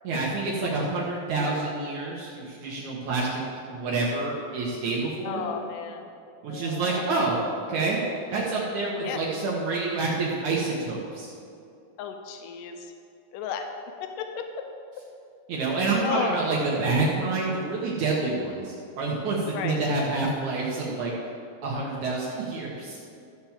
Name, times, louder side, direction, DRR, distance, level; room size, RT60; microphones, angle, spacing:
voice 1, 0.0-3.4 3.7-5.4 6.4-7.4 7.7-8.0 8.3-11.3 15.5-21.1 21.6-23.0, right 3 dB, 70° right, -4 dB, 2.5 m, -28 dB
voice 2, 5.2-6.1 6.5-7.0 9.0-9.2 12.0-12.8 13.3-13.7 14.0-14.7 16.0-16.5 19.5-19.8, left 7 dB, 90° left, 5 dB, 2.3 m, -33 dB
13.0 x 4.6 x 7.2 m, 2.5 s
omnidirectional pair, 3.7 m